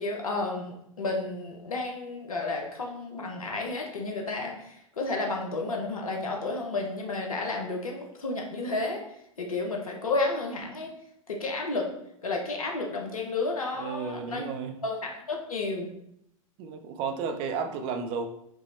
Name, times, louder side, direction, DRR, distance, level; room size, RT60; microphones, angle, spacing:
voice 1, 0.0-9.0 9.4-10.9 11.3-11.9 12.2-14.5 14.8-15.9, left 3 dB, 75° left, 1 dB, 0.8 m, -31 dB
voice 2, 13.7-14.7 16.6-18.3, right 5 dB, 30° right, 6 dB, 0.4 m, -33 dB
5.3 x 2.0 x 3.2 m, 0.76 s
figure-of-eight pair, 100°, 18 cm